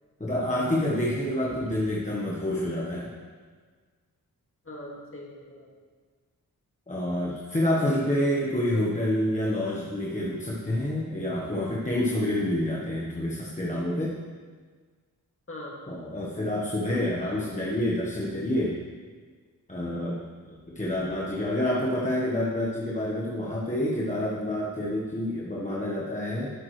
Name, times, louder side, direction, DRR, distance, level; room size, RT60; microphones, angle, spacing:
voice 1, 0.2-3.1 6.9-14.2 15.9-18.8 19.7-26.5, left 1 dB, 20° left, -5 dB, 1.2 m, -28 dB
voice 2, 4.6-5.7 7.8-8.2 8.7-8.9 15.5-15.9 17.2-17.4, left 1 dB, 35° left, -3 dB, 2.3 m, -42 dB
11.5 x 8.5 x 3.2 m, 1.5 s
wide cardioid pair, 90°, 37 cm